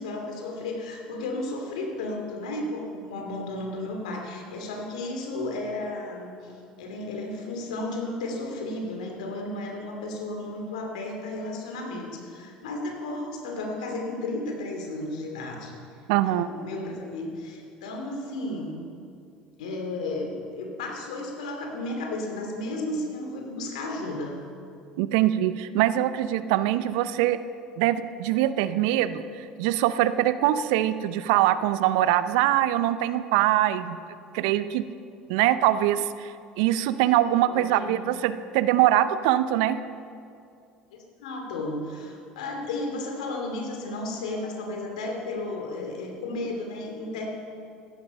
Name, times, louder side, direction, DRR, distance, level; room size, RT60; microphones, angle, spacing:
voice 1, 0.0-6.5 6.8-15.7 16.2-18.8 19.6-24.4 37.5-38.0 40.9-47.3, left 2 dB, 80° left, 2 dB, 2.5 m, -33 dB
voice 2, 16.1-16.5 25.0-27.4 27.8-34.0 34.3-34.8 35.3-36.3 36.6-39.8, right 13 dB, 70° right, 14 dB, 0.6 m, -23 dB
15.0 x 11.5 x 5.5 m, 2.4 s
hypercardioid pair, 70°, 4 cm